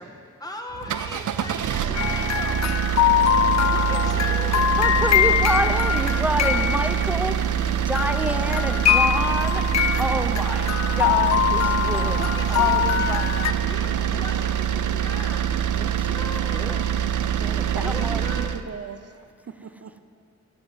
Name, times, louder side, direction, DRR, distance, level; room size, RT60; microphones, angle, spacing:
voice 1, 0.0-2.7 3.6-5.0 7.2-7.5 10.4-11.4 12.2-15.5 16.1-17.4 17.8-18.6, left 1 dB, 15° left, 2 dB, 1.4 m, -39 dB
sound 1, 0.7-18.6, right 9 dB, 90° right, 0.5 m, -25 dB
sound 2, 2.0-7.7 8.0-13.5, left 10 dB, 65° left, 0.5 m, -23 dB
voice 2, 4.5-7.5 7.9-9.6 10.0-10.7 10.9-13.4 15.8-16.8 17.4-18.2, equal, 5° right, 9 dB, 0.6 m, -29 dB
voice 3, 17.7-20.0, right 6 dB, 55° right, 10 dB, 0.8 m, -38 dB
13.5 x 7.8 x 7.9 m, 2.2 s
wide cardioid pair, 100°, 30 cm